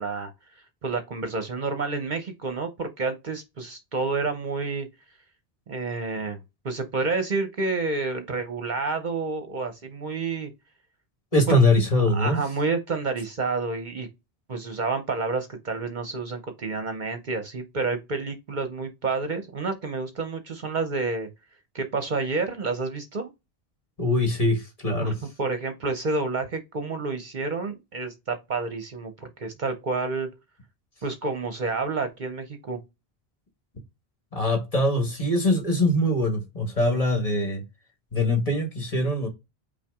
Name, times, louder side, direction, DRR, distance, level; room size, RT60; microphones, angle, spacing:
voice 1, 0.0-4.9 5.7-10.5 12.1-14.1 14.5-21.3 21.7-23.3 25.0-30.3 31.0-32.8, right 3 dB, 50° right, 0.8 m, -29 dB
voice 2, 11.3-12.4 24.0-25.2 34.3-37.6 38.1-39.3, left 1 dB, 35° left, 1.5 m, -22 dB
5.6 x 2.3 x 3.5 m
omnidirectional pair, 1.1 m